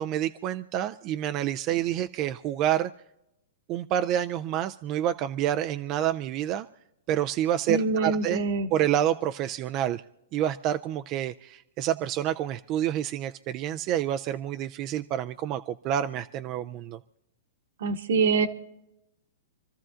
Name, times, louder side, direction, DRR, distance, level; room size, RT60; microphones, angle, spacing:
voice 1, 0.0-2.9 3.7-6.7 7.1-8.4 8.7-10.0 10.3-17.0, right 11 dB, 40° right, 9 dB, 0.4 m, -28 dB
voice 2, 7.7-8.7 17.8-18.5, right 4 dB, 70° right, 7 dB, 1.3 m, -25 dB
27.5 x 14.0 x 2.5 m, 0.87 s
hypercardioid pair, 125°, 0 cm